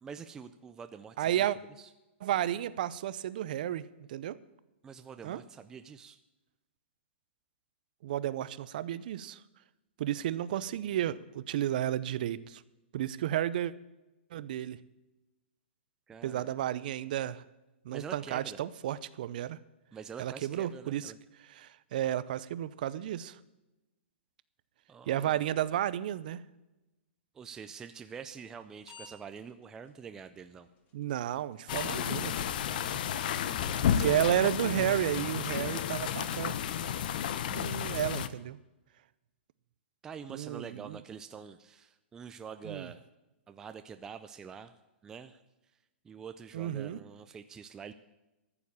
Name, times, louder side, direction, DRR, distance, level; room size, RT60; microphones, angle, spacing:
voice 1, 0.0-1.5 1.8-1.9 4.8-6.2 16.1-16.5 17.9-18.6 19.9-21.2 24.9-25.4 27.3-30.7 33.4-34.1 40.0-43.0 43.5-44.8 45.0-45.4 46.0-47.9, right 6 dB, 10° right, 9 dB, 0.4 m, -46 dB
voice 2, 1.2-1.6 2.2-4.4 5.2-5.4 8.0-9.4 10.0-12.6 12.9-13.7 14.3-14.8 16.2-17.4 17.8-19.6 20.2-21.1 21.5-23.4 25.1-26.4 30.9-32.3 34.0-36.5 37.5-38.6 40.3-41.0 42.6-42.9 46.5-47.0, right 12 dB, 45° right, 17 dB, 0.6 m, -32 dB
sound 1, 28.3-28.6 28.9-29.1 29.4-29.5 30.4-30.5 31.4-31.5 31.7-31.9 32.4-32.5 32.9-33.0 33.4-33.5, left 4 dB, 25° left, 1.9 m, -47 dB
sound 2, 31.7-38.3, left 9 dB, 45° left, 0.8 m, -32 dB
14.0 x 7.1 x 8.6 m, 1.0 s
hypercardioid pair, 165°, 6 cm